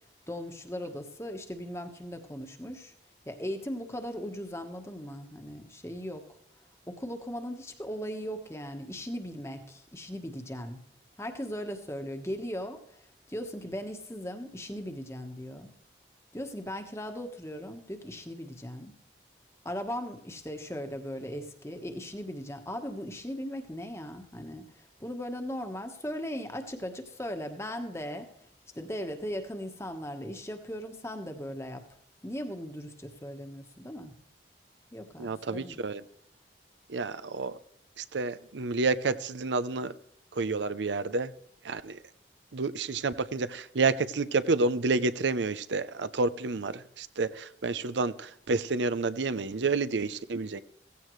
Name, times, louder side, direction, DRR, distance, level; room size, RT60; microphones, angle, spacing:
voice 1, 0.3-2.9 3.2-6.3 6.9-10.8 11.2-13.0 13.3-15.7 16.3-18.9 19.6-28.3 28.7-31.8 32.2-34.1 34.9-35.8, equal, 15° left, 6 dB, 1.3 m, -38 dB
voice 2, 35.2-36.0 36.9-37.6 38.0-39.9 40.3-41.3 41.6-42.0 42.5-50.6, right 3 dB, 85° right, 13 dB, 0.6 m, -29 dB
16.5 x 15.5 x 3.2 m, 0.73 s
head